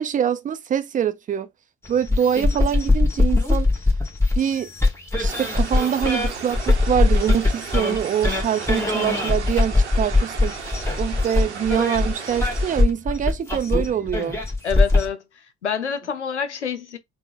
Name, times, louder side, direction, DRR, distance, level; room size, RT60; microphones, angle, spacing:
voice 1, 0.0-1.5 1.9-3.7 4.4-4.7 5.2-10.5 11.0-14.4, right 9 dB, 25° right, 0.5 m, -24 dB
sound 1, 1.8-15.1, left 2 dB, 5° left, 1.7 m, -21 dB
sound 2, 5.3-12.8, right 6 dB, 85° right, 0.8 m, -35 dB
voice 2, 14.6-17.0, left 6 dB, 85° left, 0.6 m, -27 dB
4.4 x 2.1 x 3.8 m
figure-of-eight pair, 55°, 33 cm